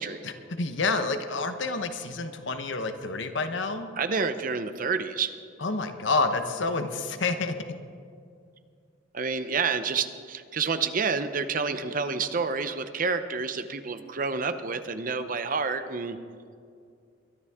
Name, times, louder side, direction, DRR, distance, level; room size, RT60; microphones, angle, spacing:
voice 1, 0.2-3.9 5.6-7.6, left 3 dB, 70° left, 8 dB, 1.0 m, -28 dB
voice 2, 4.0-5.3 9.1-16.2, right 5 dB, 45° right, 10 dB, 0.7 m, -29 dB
23.0 x 11.0 x 3.6 m, 2.3 s
head